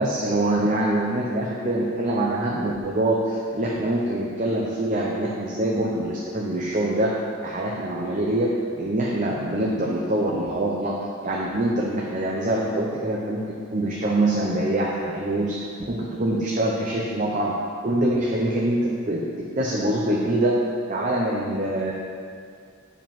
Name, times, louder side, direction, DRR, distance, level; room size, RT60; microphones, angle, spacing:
voice 1, 0.0-7.1 7.4-11.0 11.2-13.4 13.7-17.5 17.8-19.2 19.6-20.6 20.9-21.9, right 1 dB, 35° right, -3 dB, 0.6 m, -24 dB
7.2 x 5.0 x 5.8 m, 2.2 s
head